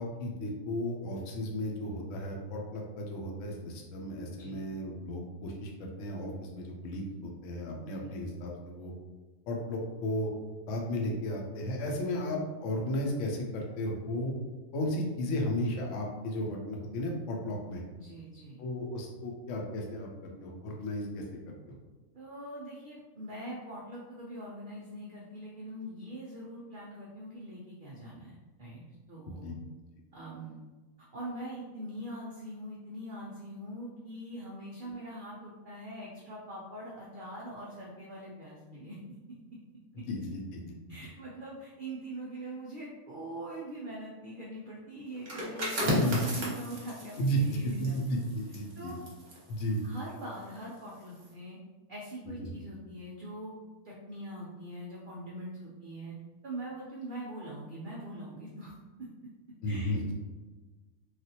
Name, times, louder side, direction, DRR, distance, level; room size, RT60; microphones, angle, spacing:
voice 1, 0.0-8.9 9.5-10.3 10.7-14.3 14.7-17.8 18.6-20.1 20.4-21.2 29.3-29.5 40.1-40.6 46.0-46.2 47.2-47.4 47.8-48.9 49.5-49.8 52.3-52.5 59.6-60.0, left 1 dB, 65° left, 0 dB, 0.9 m, -34 dB
voice 2, 18.0-18.6 22.1-28.3 28.6-28.8 29.1-29.5 30.1-30.6 31.1-39.0 40.9-48.2 48.8-49.0 49.8-51.6 51.9-53.5 53.8-56.1 56.4-58.7 59.0-59.1 59.7-60.1, right 1 dB, 75° right, -5 dB, 0.4 m, -43 dB
sound 1, 45.2-50.7 51.0-51.3, equal, 35° right, 0.8 m, -34 dB
3.3 x 2.4 x 2.7 m, 1.2 s
omnidirectional pair, 1.6 m